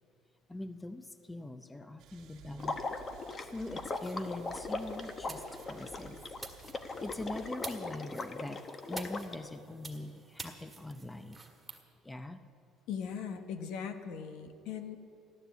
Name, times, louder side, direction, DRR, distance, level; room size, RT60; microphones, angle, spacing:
voice 1, 0.5-2.8 3.4-6.2 7.0-8.6 8.9-11.4 12.0-12.4, left 2 dB, 10° left, 10 dB, 0.6 m, -42 dB
sound 1, 2.0-7.5, right 9 dB, 65° right, 1.5 m, -55 dB
Water / Liquid, 2.6-9.4, left 3 dB, 25° left, 0.9 m, -39 dB
sound 2, 3.9-11.8, right 3 dB, 10° right, 1.7 m, -50 dB
voice 2, 12.9-15.0, left 7 dB, 75° left, 8 dB, 1.3 m, -39 dB
15.0 x 11.5 x 8.1 m, 2.6 s
cardioid pair, 150°, 0 cm